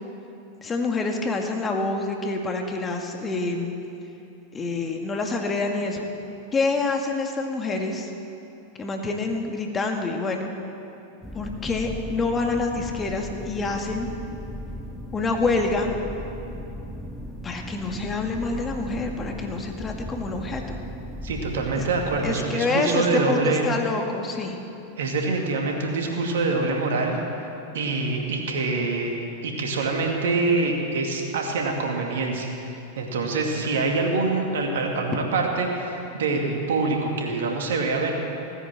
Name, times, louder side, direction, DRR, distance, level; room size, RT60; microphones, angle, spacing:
voice 1, 0.6-3.7 4.5-6.0 6.5-8.1 8.8-10.5 11.3-14.1 15.1-15.9 17.4-20.6 21.8-21.9 22.2-24.6, left 3 dB, 20° left, 2 dB, 1.9 m, -27 dB
sound 1, 11.2-22.3, equal, ahead, 1.9 m, -37 dB
voice 2, 21.2-23.7 25.0-27.2 27.7-32.5 33.0-38.1, right 3 dB, 70° right, 1 dB, 2.4 m, -25 dB
17.5 x 9.7 x 7.6 m, 2.9 s
figure-of-eight pair, 90°, 0 cm